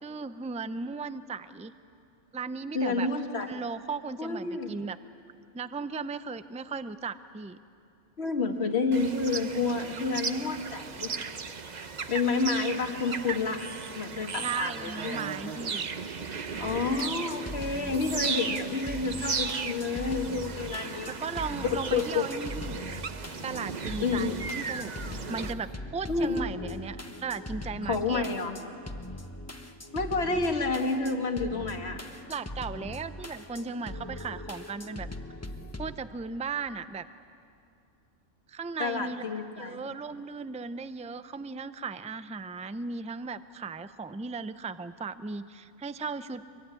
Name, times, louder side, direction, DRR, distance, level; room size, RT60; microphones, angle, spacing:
voice 1, 0.0-1.7 2.3-3.1 3.4-5.0 5.5-7.6 14.4-15.9 21.0-22.8 23.4-24.9 25.3-28.3 32.3-35.1 35.8-37.1 38.5-39.2 39.6-46.6, right 4 dB, 10° right, 12 dB, 0.3 m, -36 dB
voice 2, 2.7-3.5 4.2-4.8 8.2-11.1 12.1-13.7 14.0-15.2 16.6-21.1 21.6-22.3 24.0-24.3 26.1-26.4 27.9-28.5 29.9-32.0 38.8-39.8, left 4 dB, 55° left, 4 dB, 2.2 m, -29 dB
sound 1, 8.9-25.5, right 5 dB, 40° right, 0.9 m, -36 dB
sound 2, 16.5-36.0, left 1 dB, 15° left, 1.1 m, -41 dB
24.0 x 24.0 x 9.8 m, 2.5 s
omnidirectional pair, 1.3 m